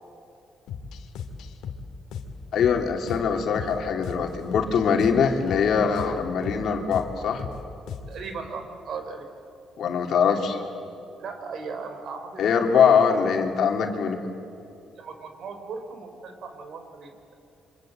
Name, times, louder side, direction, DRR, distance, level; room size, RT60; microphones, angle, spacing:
sound 1, 0.7-8.3, left 6 dB, 85° left, 2.2 m, -37 dB
voice 1, 2.5-7.4 9.8-10.6 12.4-14.2, left 6 dB, 70° left, 3 dB, 2.9 m, -22 dB
voice 2, 8.1-9.3 11.2-13.2 15.0-17.3, right 4 dB, 65° right, 6 dB, 3.9 m, -37 dB
27.5 x 24.5 x 7.8 m, 2.7 s
cardioid pair, 90°, 0 cm